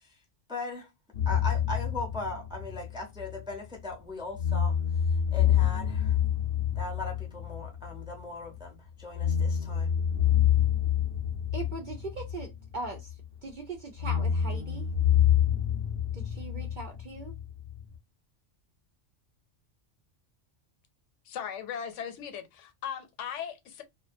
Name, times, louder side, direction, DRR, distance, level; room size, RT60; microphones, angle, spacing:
voice 1, 0.5-0.9 1.3-4.8 5.3-6.2 6.8-10.0, left 2 dB, 5° right, 0.4 m, -39 dB
sound 1, 1.1-3.9 4.3-8.6 9.1-13.3 14.0-18.0, left 9 dB, 60° left, 0.6 m, -27 dB
voice 2, 11.5-13.1 13.4-14.9 16.1-17.3, right 3 dB, 60° right, 0.5 m, -40 dB
voice 3, 21.2-23.8, left 8 dB, 80° left, 0.9 m, -38 dB
2.4 x 2.1 x 2.5 m
omnidirectional pair, 1.2 m